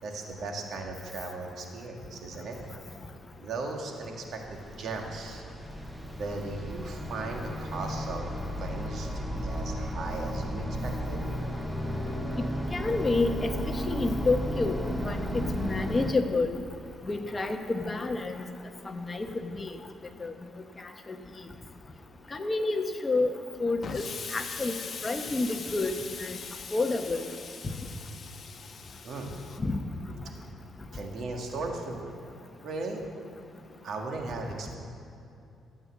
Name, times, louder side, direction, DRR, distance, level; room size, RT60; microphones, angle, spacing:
voice 1, 0.0-2.6 3.4-5.4 6.1-8.3 8.6-11.2 29.0-29.4 30.9-32.1 32.6-33.0 33.8-34.8, right 3 dB, 65° right, 1 dB, 2.0 m, -37 dB
sound 1, 4.0-16.1, equal, 10° right, 1.1 m, -34 dB
voice 2, 12.7-16.6 17.1-18.4 18.8-19.7 20.2-20.3 21.1-21.2 22.3-23.3 23.6-24.0 24.3-24.7 25.0-25.9 26.2-26.4 26.7-27.3 29.6-29.8, left 3 dB, 25° left, 5 dB, 1.1 m, -29 dB
Explosion, 23.8-29.6, left 5 dB, 45° left, 0.9 m, -41 dB
13.0 x 8.8 x 7.4 m, 2.7 s
cardioid pair, 90°, 0 cm